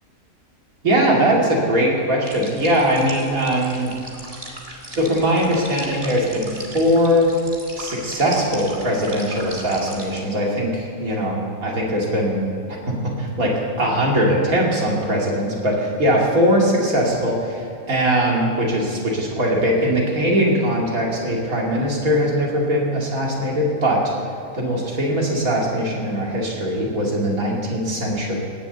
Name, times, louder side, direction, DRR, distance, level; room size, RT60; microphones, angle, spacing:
voice 1, 0.8-3.9 4.9-7.3 7.8-12.5 12.8-24.0 24.5-28.3, equal, 80° right, -3 dB, 3.1 m, -21 dB
sound 1, 2.2-10.2, right 1 dB, 25° right, 1.9 m, -38 dB
18.0 x 7.0 x 8.0 m, 2.6 s
omnidirectional pair, 1.4 m